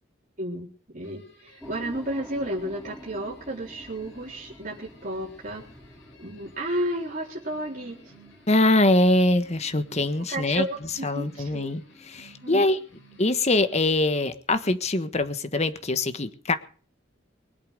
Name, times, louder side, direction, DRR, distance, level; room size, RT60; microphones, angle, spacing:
voice 1, 0.4-5.6 6.2-8.1 10.3-11.7 12.4-12.7, right 1 dB, 45° right, -3 dB, 4.0 m, -32 dB
sound 1, 1.0-14.2, equal, 75° left, 5.7 m, -56 dB
sound 2, 1.6-10.0, equal, ahead, 2.9 m, -48 dB
voice 2, 8.5-12.8 13.2-16.6, left 2 dB, 35° left, 10 dB, 1.4 m, -23 dB
24.0 x 8.5 x 6.6 m, 0.42 s
head